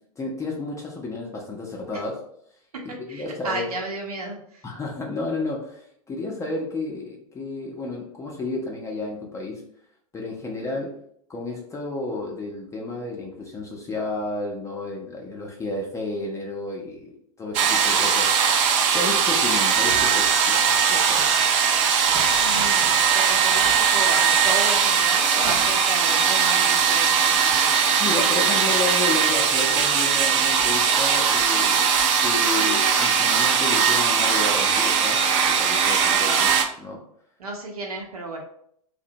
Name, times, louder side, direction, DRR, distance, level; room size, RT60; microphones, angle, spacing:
voice 1, 0.2-2.2 3.0-3.7 4.6-9.6 10.1-11.0 11.3-18.3 18.9-21.3 28.0-31.9 32.2-35.2 35.4-36.5 36.8-37.0, left 2 dB, 15° left, -1 dB, 0.5 m, -31 dB
voice 2, 3.1-4.6 22.4-27.9 36.1-36.5 37.4-38.4, right 2 dB, 75° right, 1 dB, 0.8 m, -33 dB
sound 1, 17.5-36.6, right 7 dB, 55° right, 0.4 m, -20 dB
2.7 x 2.1 x 2.7 m, 0.68 s
figure-of-eight pair, 95°, 19 cm